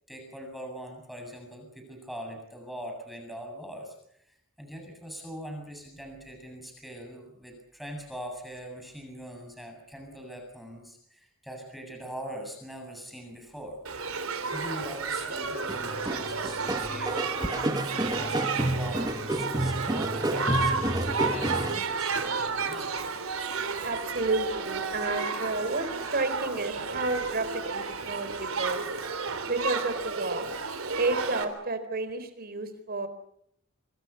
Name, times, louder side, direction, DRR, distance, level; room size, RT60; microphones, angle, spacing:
voice 1, 0.1-13.8 14.5-17.7 17.9-22.9, equal, ahead, 2 dB, 7.5 m, -42 dB
Shout / Human group actions, 13.8-31.4, right 4 dB, 80° right, 3.4 m, -32 dB
sound 1, 15.7-21.8, right 1 dB, 20° right, 1.4 m, -30 dB
voice 2, 23.8-25.9 26.1-28.9 29.5-30.5 31.0-33.1, right 3 dB, 50° right, 10 dB, 4.1 m, -31 dB
26.0 x 25.5 x 5.8 m, 0.71 s
head